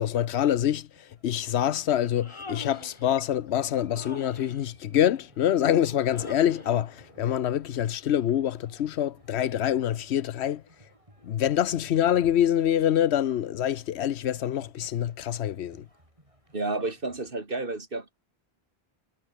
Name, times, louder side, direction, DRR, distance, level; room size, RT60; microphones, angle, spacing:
voice 1, 0.0-10.6 11.2-15.9, left 10 dB, 90° left, 1.0 m, -26 dB
sound 1, 0.9-17.3, right 1 dB, 30° right, 6.5 m, -60 dB
Thunder, 1.6-13.5 13.8-13.9, left 1 dB, 50° left, 6.3 m, -52 dB
Human voice, 2.0-3.1 3.9-4.6 6.1-6.8, left 3 dB, 30° left, 1.4 m, -44 dB
voice 2, 16.5-18.2, right 2 dB, 55° right, 3.0 m, -31 dB
omnidirectional pair, 1.1 m